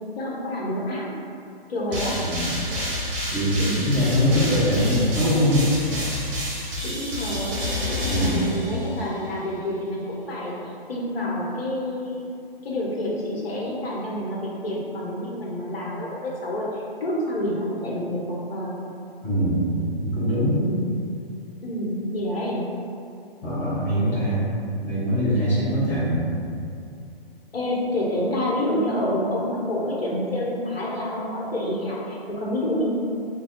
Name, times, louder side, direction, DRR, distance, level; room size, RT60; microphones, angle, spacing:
voice 1, 0.2-1.1 1.7-2.2 3.6-4.0 6.8-12.2 12.6-18.8 20.5-20.9 21.6-22.6 27.5-32.9, left 1 dB, 75° left, -4 dB, 1.0 m, -28 dB
sound 1, 1.9-9.2, left 1 dB, 25° right, 1.1 m, -29 dB
voice 2, 2.1-2.5 3.3-5.6 8.1-8.5 19.2-20.6 23.4-24.5 24.8-26.3, equal, 5° left, -11 dB, 0.5 m, -22 dB
3.5 x 2.2 x 3.6 m, 2.5 s
hypercardioid pair, 140°, 30 cm